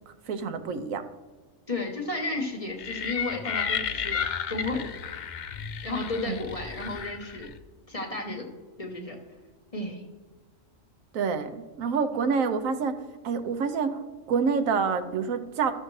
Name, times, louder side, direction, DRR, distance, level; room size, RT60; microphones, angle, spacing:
voice 1, 0.3-1.0 6.2-6.4 11.1-13.0 13.2-14.0 14.3-15.7, right 5 dB, 85° right, 8 dB, 1.2 m, -27 dB
voice 2, 1.7-4.2 4.5-5.0 5.8-7.5 7.9-8.5 8.8-9.2 9.7-10.0, left 2 dB, 30° left, 2 dB, 0.9 m, -33 dB
sound 1, 2.8-7.6, left 7 dB, 70° left, 0.4 m, -33 dB
13.0 x 6.6 x 3.1 m, 1.4 s
omnidirectional pair, 1.4 m